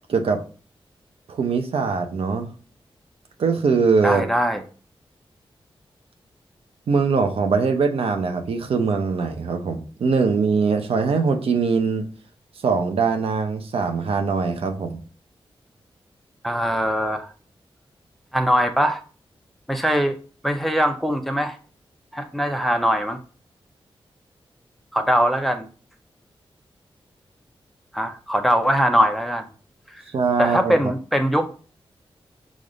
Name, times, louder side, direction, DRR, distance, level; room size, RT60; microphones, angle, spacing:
voice 1, 0.1-0.4 1.3-2.5 3.4-4.3 6.9-12.0 12.6-15.0 30.1-30.7, right 5 dB, 80° right, 5 dB, 0.7 m, -22 dB
voice 2, 4.0-4.6 16.4-17.3 18.3-19.0 19.7-20.2 20.4-21.6 22.1-23.2 24.9-25.7 27.9-29.5 29.9-30.0 30.4-31.5, equal, ahead, 5 dB, 0.7 m, -21 dB
5.2 x 2.6 x 3.8 m, 0.38 s
wide cardioid pair, 85°, 10 cm